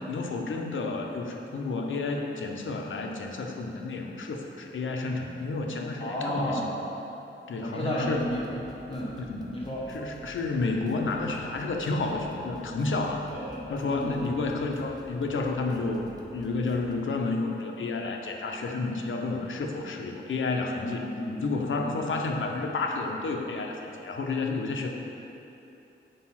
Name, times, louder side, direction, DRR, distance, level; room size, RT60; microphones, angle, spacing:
voice 1, 0.0-6.6 7.5-8.3 9.2-9.5 9.9-13.3 13.7-21.0 21.4-24.9, left 3 dB, 75° left, 2 dB, 0.7 m, -31 dB
voice 2, 6.0-6.8 7.6-9.2 9.4-9.8 13.3-14.2 20.8-22.0, equal, 30° left, -5 dB, 1.2 m, -33 dB
sound 1, 8.0-17.0, right 1 dB, 20° right, 0.6 m, -49 dB
6.5 x 4.8 x 5.8 m, 2.9 s
wide cardioid pair, 130°, 20 cm